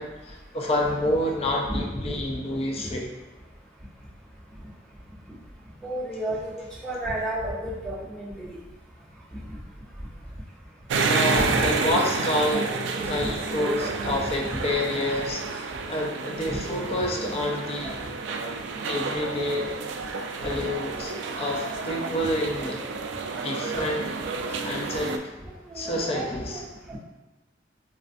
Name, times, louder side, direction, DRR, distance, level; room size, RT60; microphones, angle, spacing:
voice 1, 0.0-3.1 11.1-12.8 13.1-17.9 18.9-19.7 20.4-22.8 23.4-24.1 24.5-25.3 25.7-26.6, left 1 dB, 35° left, 0 dB, 0.4 m, -28 dB
voice 2, 1.6-2.1 5.8-6.5 6.8-8.5 11.3-11.7 12.5-13.4 14.0-14.1 14.5-14.6 16.5-16.7 17.2-17.3 17.8-17.9 20.5-20.6 25.7-26.6 26.9-27.0, right 1 dB, 5° left, -10 dB, 1.1 m, -32 dB
sound 1, 10.9-25.2, right 4 dB, 85° right, 0.3 m, -30 dB
4.1 x 2.4 x 2.5 m, 1.1 s
head